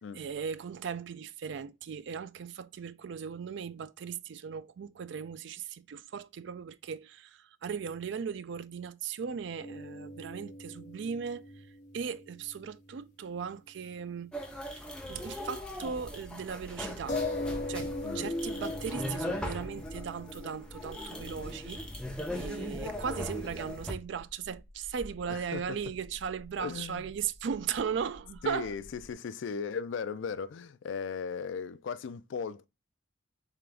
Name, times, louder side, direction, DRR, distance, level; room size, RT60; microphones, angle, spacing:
voice 1, 0.1-11.7 11.9-14.3 14.7-17.2 17.7-21.8 22.3-28.7, right 7 dB, 70° right, 0.4 m, -37 dB
sound 1, 9.6-13.5 13.8-13.9 17.1-22.3, left 2 dB, 40° left, 0.9 m, -41 dB
sound 2, 14.3-23.9, left 1 dB, 5° left, 0.7 m, -38 dB
sound 3, 15.6-29.1, left 1 dB, 90° right, 1.1 m, -51 dB
voice 2, 25.3-25.8 26.6-27.1 28.4-32.7, left 5 dB, 75° left, 0.4 m, -37 dB
3.8 x 3.3 x 3.2 m
head